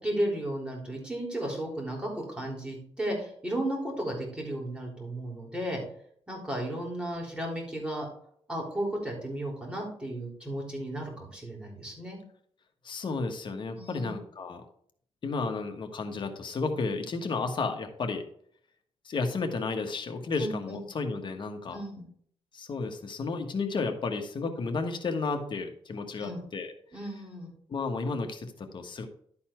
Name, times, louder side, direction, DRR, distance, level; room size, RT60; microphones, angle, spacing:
voice 1, 0.0-5.8 6.3-8.1 8.5-12.2 13.8-14.1 20.4-20.8 21.7-22.0 26.2-26.4 26.9-27.5, right 1 dB, 10° right, -2 dB, 3.7 m, -34 dB
voice 2, 12.8-14.6 15.2-18.2 19.0-21.8 22.5-26.7 27.7-29.1, left 4 dB, 45° left, 5 dB, 1.4 m, -32 dB
11.5 x 4.3 x 4.5 m, 0.63 s
cardioid pair, 100°, 11 cm